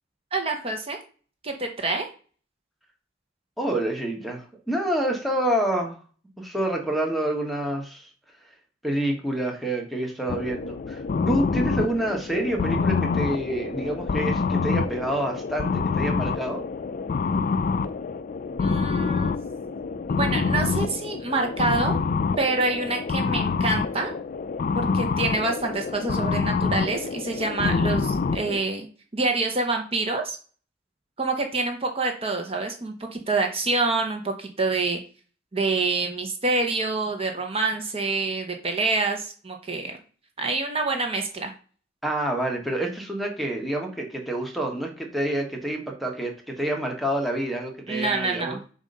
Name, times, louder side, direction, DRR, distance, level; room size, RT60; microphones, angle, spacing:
voice 1, 0.3-1.0 1.4-2.1 18.6-19.5 20.1-22.0 22.4-24.1 24.7-28.9 29.1-30.4 31.2-35.0 35.5-40.0 40.4-41.5 47.9-48.6, right 3 dB, 30° right, 4 dB, 0.9 m, -26 dB
voice 2, 3.6-5.9 6.4-8.1 8.8-11.0 11.3-16.6 42.0-48.6, right 1 dB, ahead, 2 dB, 1.1 m, -27 dB
sound 1, 10.3-28.6, left 4 dB, 45° left, 0.4 m, -26 dB
7.1 x 2.6 x 5.3 m, 0.39 s
head